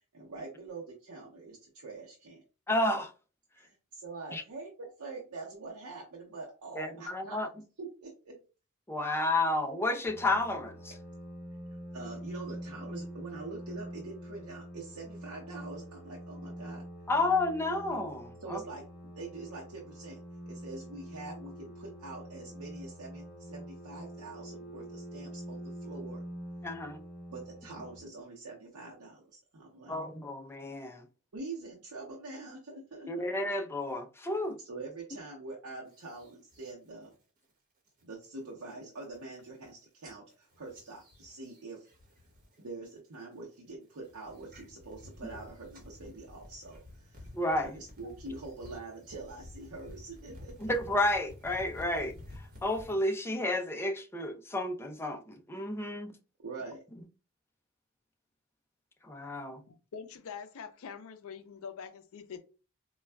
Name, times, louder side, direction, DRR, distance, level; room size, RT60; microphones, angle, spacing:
voice 1, 0.1-2.4 3.6-7.4 7.8-8.4 11.9-16.8 18.4-18.8 19.2-20.2 20.4-26.2 27.3-30.0 31.3-33.1 34.6-37.1 38.0-41.9 42.6-47.3 47.6-50.7 56.4-56.8, right 3 dB, 85° right, 0.7 m, -45 dB
voice 2, 2.7-3.1 4.3-4.4 6.7-7.5 8.9-11.0 17.1-18.6 26.6-27.0 29.9-31.1 33.1-34.6 47.3-47.8 50.6-56.1 59.0-59.6, left 2 dB, 10° left, 0.4 m, -31 dB
sound 1, 10.1-28.0, equal, 15° right, 1.2 m, -45 dB
sound 2, 35.9-36.7 37.1-37.5 37.9-38.3 38.7-38.8 39.0-39.7 40.0-42.6 42.9-43.4 43.9-53.0, left 1 dB, 40° right, 1.2 m, -51 dB
voice 3, 59.7-62.4, left 6 dB, 70° left, 0.4 m, -44 dB
4.2 x 2.3 x 2.2 m
head